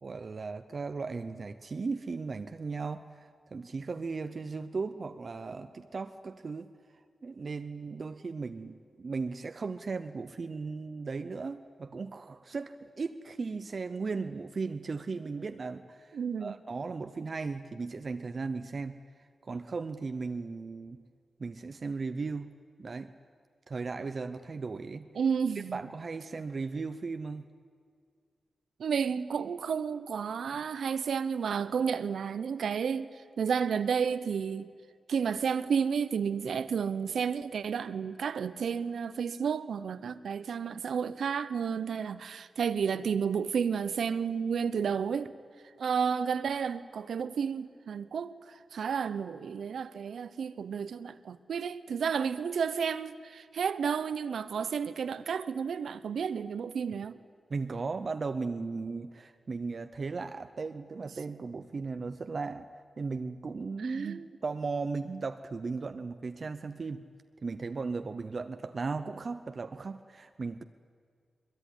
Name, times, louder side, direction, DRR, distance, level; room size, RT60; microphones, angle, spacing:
voice 1, 0.0-6.7 7.2-19.0 19.4-21.0 21.4-22.5 22.8-23.1 23.7-25.1 25.7-27.4 57.5-62.7 63.0-67.1 67.4-70.6, right 4 dB, 40° right, 0.7 m, -36 dB
voice 2, 16.1-16.5 25.1-25.8 28.8-34.7 35.1-45.3 45.8-57.2 63.8-64.2, right 6 dB, 85° right, 0.9 m, -31 dB
22.5 x 22.0 x 10.0 m
wide cardioid pair, 180°, 0 cm